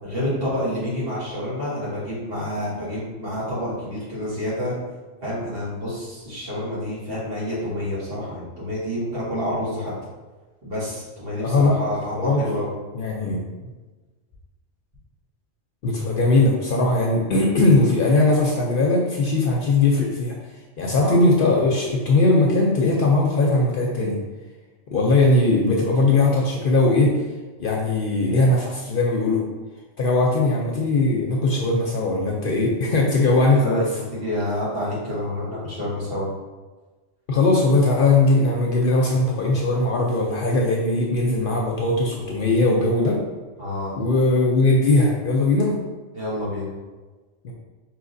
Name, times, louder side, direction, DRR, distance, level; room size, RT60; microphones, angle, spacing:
voice 1, 0.0-4.8 5.2-9.9 10.6-12.7 20.9-21.2 33.5-36.3 43.6-43.9 46.1-46.7, left 1 dB, 55° right, -8 dB, 1.7 m, -28 dB
voice 2, 11.4-11.8 12.2-12.4 12.9-13.7 15.8-20.3 20.8-24.2 24.9-27.1 27.6-29.4 30.0-33.8 37.3-43.2 44.0-45.7 47.4-47.5, left 2 dB, 60° left, -2 dB, 0.6 m, -19 dB
4.8 x 3.0 x 2.6 m, 1.3 s
omnidirectional pair, 1.2 m